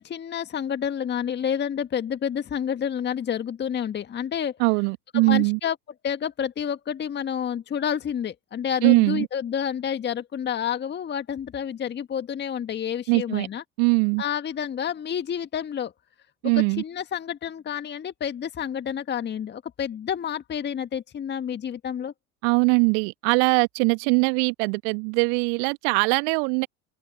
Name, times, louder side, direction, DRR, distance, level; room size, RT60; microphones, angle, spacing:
voice 1, 0.0-4.6 5.1-5.7 6.0-13.6 14.2-15.9 16.8-22.1, left 8 dB, 25° left, 1.7 m, -29 dB
voice 2, 4.6-5.6 8.8-9.3 13.1-13.5 13.8-14.2 16.4-16.8 22.4-26.7, right 40 dB or more, 50° right, 1.7 m, -21 dB
open air
figure-of-eight pair, 75°, 39 cm